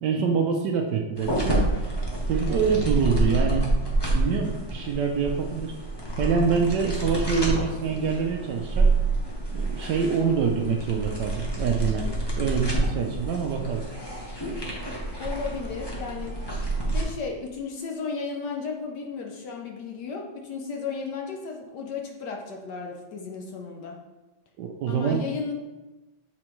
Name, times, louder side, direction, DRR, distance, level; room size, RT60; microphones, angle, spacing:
voice 1, 0.0-1.6 2.3-3.8 4.1-5.7 6.2-8.9 9.5-12.1 12.4-13.8 24.6-25.2, right 6 dB, 70° right, 2 dB, 1.1 m, -25 dB
sound 1, 1.2-17.0, right 2 dB, 25° left, 0.6 m, -28 dB
voice 2, 15.2-16.4 16.9-24.0 24.9-25.5, left 5 dB, 65° left, 1 dB, 1.1 m, -34 dB
7.5 x 4.1 x 3.0 m, 1.1 s
omnidirectional pair, 2.2 m